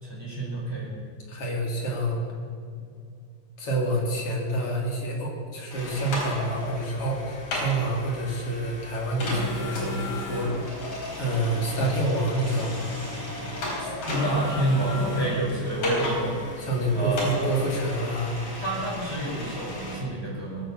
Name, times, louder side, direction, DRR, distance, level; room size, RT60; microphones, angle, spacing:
voice 1, 0.0-0.9 14.1-16.3 16.9-17.6 18.5-20.7, right 1 dB, 5° right, -4 dB, 4.3 m, -28 dB
voice 2, 1.3-2.2 3.6-10.8 11.2-12.9 16.6-18.3, right 1 dB, 45° left, -1 dB, 3.4 m, -27 dB
sound 1, 5.7-20.0, left 2 dB, 65° left, 5.7 m, -34 dB
21.5 x 8.7 x 7.3 m, 2.3 s
omnidirectional pair, 4.0 m